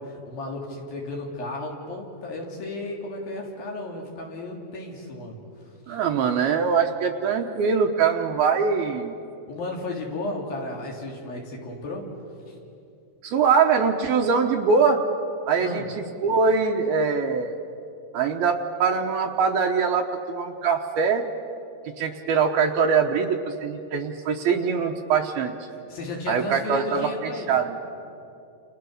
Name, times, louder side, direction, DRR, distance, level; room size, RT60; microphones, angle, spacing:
voice 1, 0.0-5.4 5.9-6.0 9.5-12.1 12.5-12.6 15.6-15.9 25.9-27.6, left 2 dB, 60° left, -1 dB, 4.8 m, -34 dB
voice 2, 5.9-9.1 13.2-15.0 15.5-15.8 16.2-17.6 18.1-21.3 22.0-25.6 26.3-27.8, right 5 dB, 75° right, 2 dB, 2.9 m, -23 dB
30.0 x 29.0 x 6.7 m, 2.6 s
omnidirectional pair, 4.7 m